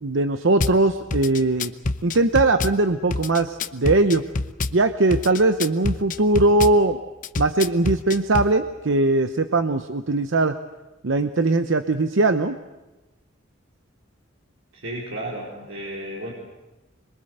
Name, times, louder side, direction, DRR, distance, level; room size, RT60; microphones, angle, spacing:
voice 1, 0.0-1.7 2.0-4.2 4.7-7.0 7.4-10.5 11.0-12.6, right 2 dB, 70° right, 9 dB, 0.9 m, -20 dB
Drum kit / Bass drum, 0.6-0.8 1.1-2.8 3.1-4.8 5.1-6.8 7.2-8.5, left 3 dB, 40° left, 0.8 m, -26 dB
voice 2, 14.7-16.3, right 1 dB, 90° right, -4 dB, 4.8 m, -33 dB
25.5 x 23.0 x 8.0 m, 1.1 s
head